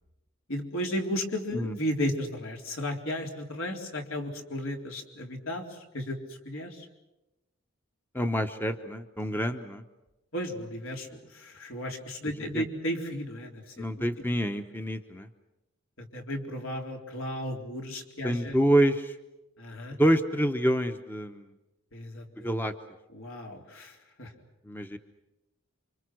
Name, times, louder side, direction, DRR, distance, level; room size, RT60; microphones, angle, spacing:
voice 1, 0.5-5.6 5.9-6.9 10.3-13.7 16.0-18.6 19.6-20.0 21.9-22.5 23.1-24.3, equal, 75° left, 2 dB, 4.0 m, -34 dB
voice 2, 8.1-9.8 12.4-12.6 13.8-15.3 18.2-19.2 19.9-21.5 22.4-22.7 24.6-25.0, right 1 dB, 10° left, 7 dB, 0.9 m, -27 dB
29.0 x 25.5 x 6.3 m, 0.98 s
head